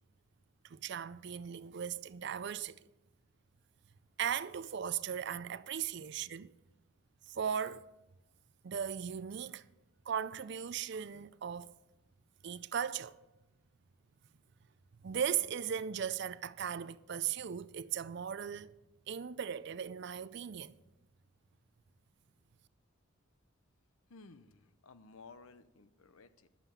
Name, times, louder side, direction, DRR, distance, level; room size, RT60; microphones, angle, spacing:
voice 1, 0.6-2.8 4.2-6.5 7.2-7.9 8.6-9.7 10.1-11.7 12.4-13.2 15.0-18.7 19.1-20.8, right 8 dB, 50° right, 0.4 m, -37 dB
voice 2, 24.1-26.5, left 3 dB, 85° left, 0.7 m, -56 dB
11.5 x 7.4 x 6.8 m
head